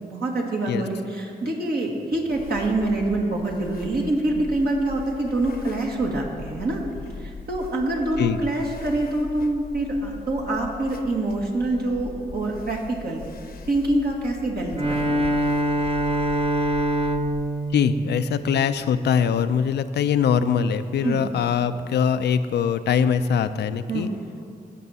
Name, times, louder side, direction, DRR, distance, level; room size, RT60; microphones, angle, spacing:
voice 1, 0.0-6.8 7.2-13.2 13.7-14.8 21.0-21.2 23.9-24.2, right 2 dB, 70° right, -1 dB, 1.7 m, -25 dB
sound 1, 2.3-17.5, left 3 dB, 65° left, 0.7 m, -40 dB
Bowed string instrument, 14.7-19.0, right 1 dB, 35° right, 0.8 m, -25 dB
voice 2, 17.7-24.1, left 7 dB, 90° left, 11 dB, 0.4 m, -22 dB
16.5 x 6.0 x 4.1 m, 2.3 s
cardioid pair, 60°, 17 cm